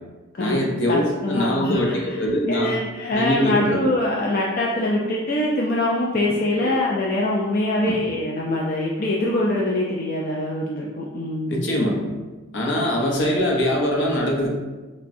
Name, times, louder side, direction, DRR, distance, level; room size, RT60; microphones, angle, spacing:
voice 1, 0.4-2.8 3.1-3.9 6.6-6.8 7.8-8.0 11.5-12.0 12.5-14.5, left 1 dB, 70° left, -1 dB, 0.8 m, -23 dB
voice 2, 0.9-2.0 2.5-11.6, left 1 dB, 50° left, -4 dB, 0.4 m, -23 dB
5.9 x 2.2 x 2.6 m, 1.2 s
head